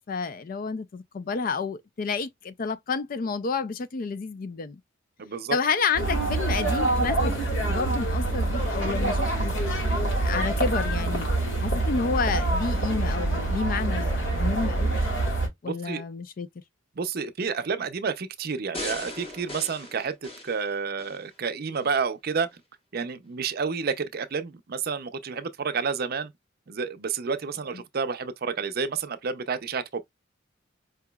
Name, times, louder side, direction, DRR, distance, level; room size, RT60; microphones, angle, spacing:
voice 1, 0.0-4.8 5.5-7.3 7.7-9.5 10.2-11.3 11.6-15.0 15.6-16.5, left 5 dB, 45° left, 0.4 m, -30 dB
voice 2, 5.2-5.6 15.7-16.0 17.0-22.5 22.9-26.3 26.7-30.0, right 5 dB, 50° right, 0.5 m, -30 dB
sound 1, 5.9-15.5, right 2 dB, 75° left, 2.0 m, -26 dB
sound 2, 18.7-21.2 21.7-21.8, left 1 dB, 30° left, 1.1 m, -38 dB
4.7 x 2.9 x 2.2 m
head